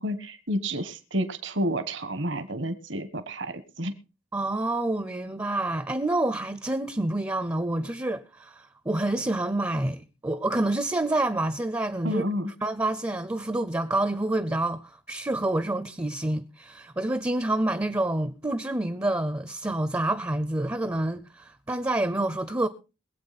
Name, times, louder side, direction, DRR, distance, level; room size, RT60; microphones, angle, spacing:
voice 1, 0.0-3.9 12.0-12.5, equal, 60° right, 1.3 m, -30 dB
voice 2, 4.3-12.2 12.6-22.7, right 2 dB, 15° right, 0.6 m, -28 dB
22.0 x 8.3 x 4.2 m
head